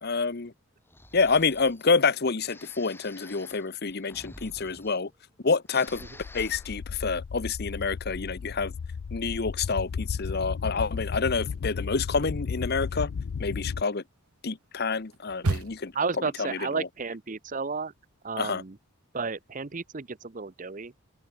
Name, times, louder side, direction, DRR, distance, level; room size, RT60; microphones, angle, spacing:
voice 1, 0.0-0.5 1.1-5.1 5.4-6.0 6.3-8.7 9.1-13.1 13.4-14.0 14.4-15.9 16.8-16.9 18.4-18.6, left 4 dB, 45° left, 0.8 m, -27 dB
Breathing, 0.9-1.9 2.4-5.4 5.6-6.8, left 2 dB, 10° left, 5.5 m, -50 dB
sound 1, 5.9-13.8, left 5 dB, 65° left, 0.4 m, -34 dB
sound 2, 9.5-10.7 11.0-16.1, right 3 dB, 80° right, 1.0 m, -36 dB
voice 2, 15.9-17.9 18.2-18.8 19.1-20.9, right 4 dB, 35° right, 0.7 m, -32 dB
open air
head